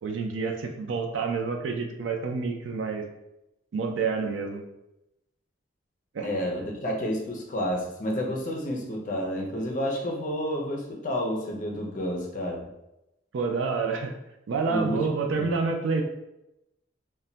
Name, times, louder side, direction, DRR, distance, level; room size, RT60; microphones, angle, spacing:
voice 1, 0.0-3.1 3.7-4.6 6.1-6.3 13.3-14.1 14.5-16.0, right 4 dB, 90° right, 3 dB, 0.4 m, -28 dB
voice 2, 6.2-12.7 14.7-15.1 15.4-15.5, equal, 45° left, 0 dB, 0.5 m, -30 dB
2.2 x 2.1 x 3.7 m, 0.90 s
head